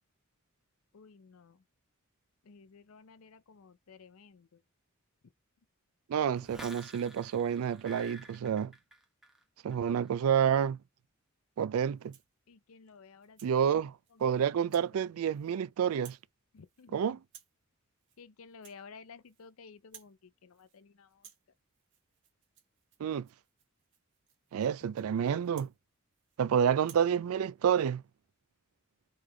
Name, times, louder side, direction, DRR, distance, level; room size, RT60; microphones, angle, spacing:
voice 1, 0.9-1.6 2.4-4.6 12.5-13.7 14.1-14.5 16.5-17.2 18.2-21.3, left 5 dB, 75° left, 0.5 m, -54 dB
voice 2, 6.1-8.7 9.6-10.8 11.6-12.1 13.4-13.9 14.2-16.2 16.9-17.2 23.0-23.3 24.5-25.7 26.4-28.0, right 8 dB, 80° right, 0.3 m, -29 dB
sound 1, 6.3-9.4 9.7-10.1, right 1 dB, ahead, 0.9 m, -51 dB
Rattle (instrument), 11.9-12.4 12.9-13.6 14.0-14.3 14.7-14.9 15.2-15.6 15.9-16.3 16.6-16.9 17.2-17.6 18.0-18.2 18.5-19.5 19.8-20.2 20.5-20.8 21.1-26.4 26.8-27.1, right 9 dB, 55° right, 1.1 m, -59 dB
3.6 x 3.3 x 3.4 m
head